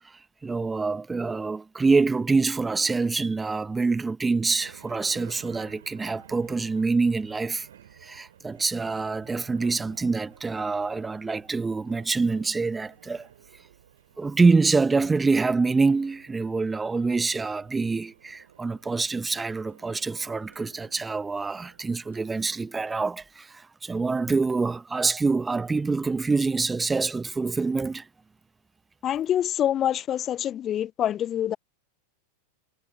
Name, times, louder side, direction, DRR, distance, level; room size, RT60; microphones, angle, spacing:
voice 1, 0.0-7.7 8.0-13.3 14.2-28.1, right 4 dB, 15° right, 1.2 m, -26 dB
sound 1, 4.6-22.9, right 10 dB, 70° right, 3.5 m, -53 dB
voice 2, 29.0-31.6, left 10 dB, 30° left, 0.4 m, -26 dB
figure-of-eight pair, 90°, 0 cm